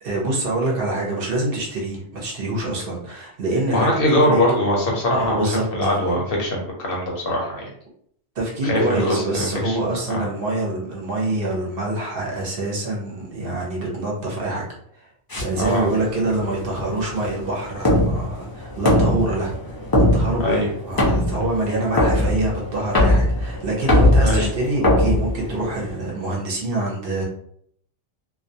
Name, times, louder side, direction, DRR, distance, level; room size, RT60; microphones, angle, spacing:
voice 1, 0.0-4.4 5.1-6.3 8.4-14.6 15.0-15.1 15.4-27.2, right 2 dB, 60° right, -2 dB, 0.8 m, -25 dB
voice 2, 3.7-7.7 8.6-9.8 10.1-10.3 15.6-15.9 20.4-20.7 24.2-24.5, left 1 dB, 60° left, -1 dB, 0.7 m, -22 dB
sound 1, 15.3-26.0, left 1 dB, 35° left, 0.4 m, -21 dB
2.2 x 2.2 x 2.6 m, 0.66 s
omnidirectional pair, 1.2 m